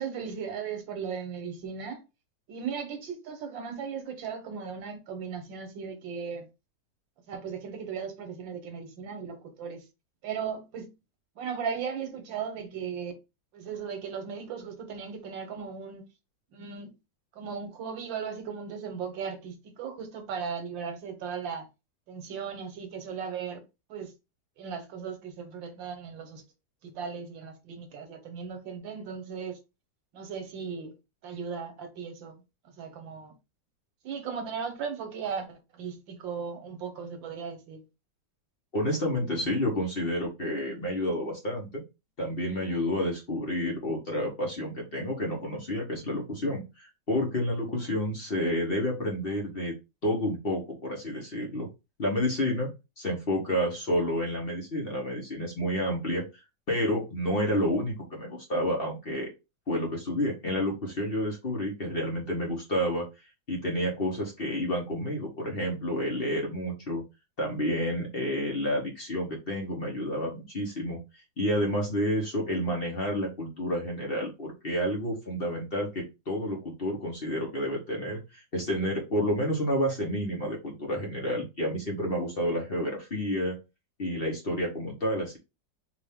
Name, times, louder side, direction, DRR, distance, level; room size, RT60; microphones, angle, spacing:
voice 1, 0.0-2.0 2.5-6.5 7.3-9.8 10.2-10.9 11.4-13.1 13.5-16.0 16.5-16.9 17.3-21.7 22.1-23.6 23.9-24.1 24.6-26.4 26.8-29.6 30.1-30.9 31.2-32.4 32.8-33.3 34.0-37.8, right 6 dB, 90° right, 1.8 m, -37 dB
voice 2, 38.7-41.8 42.2-49.7 50.0-51.7 52.0-52.7 53.0-56.2 56.7-59.3 59.7-63.1 63.5-67.0 67.4-71.0 71.4-83.5 84.0-85.4, equal, 35° left, 1.2 m, -30 dB
4.9 x 2.7 x 3.6 m
omnidirectional pair, 2.0 m